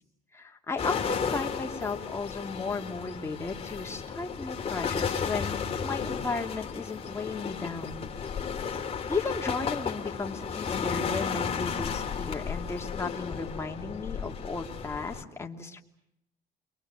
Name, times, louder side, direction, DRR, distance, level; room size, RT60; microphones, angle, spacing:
voice 1, 0.3-8.1 8.6-15.8, left 3 dB, 15° left, 2 dB, 2.9 m, -35 dB
sound 1, 0.8-15.2, left 6 dB, 35° left, 2.7 m, -33 dB
29.5 x 24.0 x 7.7 m, 0.79 s
cardioid pair, 110°, 17 cm